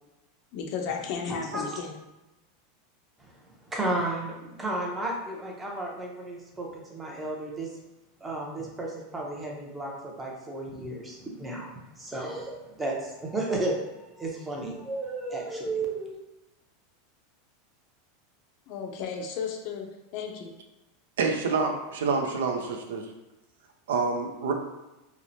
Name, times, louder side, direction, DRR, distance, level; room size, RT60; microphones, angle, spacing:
voice 1, 0.5-2.0 18.7-19.9 20.1-20.5, left 6 dB, 55° left, 2 dB, 0.5 m, -34 dB
voice 2, 1.3-1.8 3.2-7.8 8.2-11.7 12.0-16.2, right 2 dB, 15° right, -2 dB, 0.6 m, -33 dB
voice 3, 21.2-23.1 23.9-24.5, right 4 dB, 85° right, 3 dB, 0.4 m, -27 dB
2.9 x 2.1 x 2.6 m, 1.0 s
supercardioid pair, 120°, 0 cm